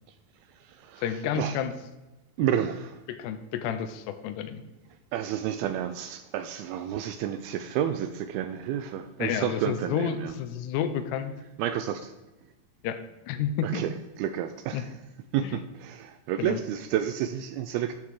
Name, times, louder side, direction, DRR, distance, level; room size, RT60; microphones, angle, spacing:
voice 1, 1.0-1.7 2.4-2.5 3.1-4.6 9.2-11.3 12.8-13.8 14.7-14.8 15.4-15.6 16.4-16.6, left 8 dB, 85° left, 10 dB, 2.9 m, -30 dB
voice 2, 2.4-3.0 5.1-10.3 11.6-12.1 13.6-13.9 14.2-14.9 15.3-17.9, right 10 dB, 80° right, 9 dB, 2.2 m, -30 dB
13.0 x 5.8 x 4.8 m, 1.1 s
omnidirectional pair, 4.8 m